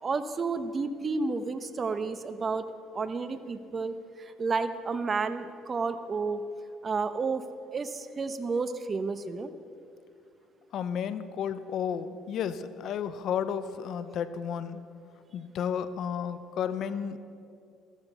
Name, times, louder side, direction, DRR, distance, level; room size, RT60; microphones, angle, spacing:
voice 1, 0.0-6.4 6.8-7.4 7.7-9.5, right 4 dB, 35° right, 11 dB, 1.1 m, -31 dB
voice 2, 10.7-14.8 15.3-17.2, left 8 dB, 60° left, 13 dB, 0.8 m, -32 dB
15.5 x 14.5 x 5.7 m, 2.5 s
supercardioid pair, 75°, 0 cm